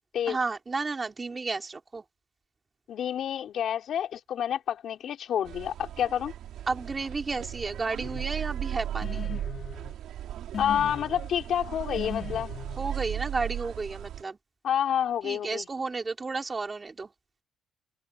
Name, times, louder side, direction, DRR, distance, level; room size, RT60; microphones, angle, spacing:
voice 1, 0.3-2.0 6.7-9.2 12.8-14.4 15.2-17.1, right 4 dB, 30° right, 4.7 m, -32 dB
voice 2, 2.9-6.3 10.6-12.5 14.6-15.7, left 9 dB, 65° left, 4.9 m, -29 dB
sound 1, 5.5-14.2, right 11 dB, 80° right, 3.5 m, -36 dB
sound 2, 8.0-8.2 9.0-9.9 10.5-11.2 11.9-12.8, left 7 dB, 50° left, 4.0 m, -38 dB
cardioid pair, 90°, 0 cm